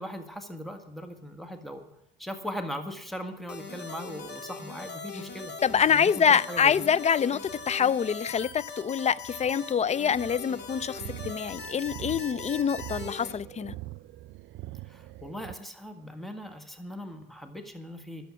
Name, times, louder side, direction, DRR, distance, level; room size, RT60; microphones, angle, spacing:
voice 1, 0.0-1.9 2.2-5.5 5.9-6.8 14.9-18.3, equal, ahead, 1.6 m, -39 dB
sound 1, 3.5-13.3, left 4 dB, 60° left, 2.1 m, -41 dB
sound 2, 5.1-15.5, right 16 dB, 70° right, 0.4 m, -44 dB
voice 2, 5.6-13.7, left 7 dB, 35° left, 0.4 m, -25 dB
11.5 x 7.2 x 9.4 m
cardioid pair, 90°, 20 cm